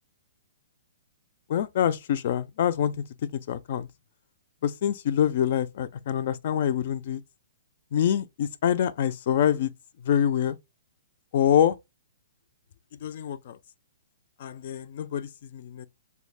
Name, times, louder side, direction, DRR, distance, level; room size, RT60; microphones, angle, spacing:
voice 1, 1.5-2.9 3.3-3.9 4.6-7.2 7.9-9.7 10.0-10.6 11.3-11.8 13.0-13.6 14.4-15.9, left 9 dB, 40° left, 0.3 m, -25 dB
3.5 x 2.3 x 3.2 m
hypercardioid pair, 170°, 0 cm